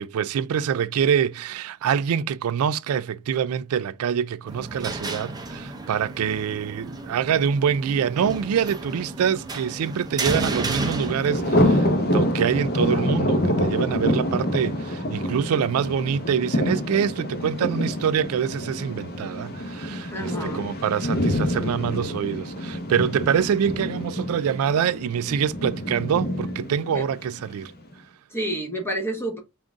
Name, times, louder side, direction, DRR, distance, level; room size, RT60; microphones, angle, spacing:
voice 1, 0.0-27.7, right 8 dB, 80° right, 0.3 m, -25 dB
sound 1, 4.5-11.8, right 2 dB, 20° right, 0.5 m, -32 dB
Thunder, 10.7-27.6, left 1 dB, 45° left, 0.9 m, -26 dB
voice 2, 20.1-20.7 23.4-23.5 26.9-27.1 28.3-29.4, right 1 dB, 10° left, 0.9 m, -30 dB
3.7 x 2.5 x 3.5 m
head